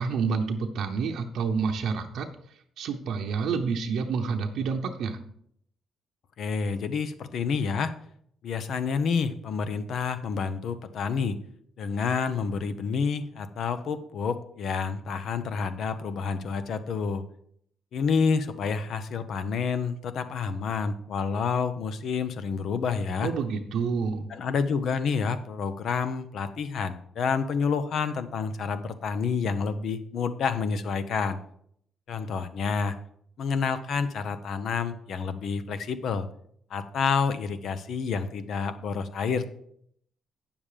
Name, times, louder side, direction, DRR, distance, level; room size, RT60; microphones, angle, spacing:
voice 1, 0.0-2.3 2.8-5.2 23.2-24.3, right 5 dB, 75° right, 3 dB, 0.8 m, -28 dB
voice 2, 6.4-7.9 8.4-11.4 11.8-17.2 17.9-23.3 24.3-31.4 32.1-33.0 33.4-36.3 36.7-39.5, left 5 dB, 65° left, 12 dB, 0.8 m, -29 dB
9.0 x 7.1 x 5.0 m, 0.68 s
cardioid pair, 90°, 0 cm